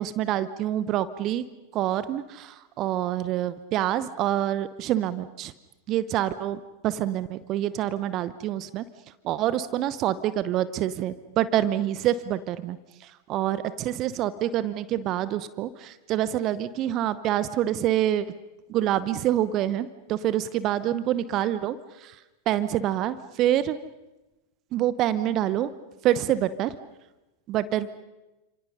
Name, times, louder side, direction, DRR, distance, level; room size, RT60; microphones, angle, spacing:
voice 1, 0.0-1.4 1.7-5.5 5.9-8.8 9.2-12.8 13.0-18.3 18.7-22.2 22.5-23.8 24.7-25.7 26.0-26.7 27.5-27.9, right 12 dB, 35° right, 15 dB, 0.9 m, -26 dB
30.0 x 27.0 x 5.5 m, 1.1 s
figure-of-eight pair, 90°, 0 cm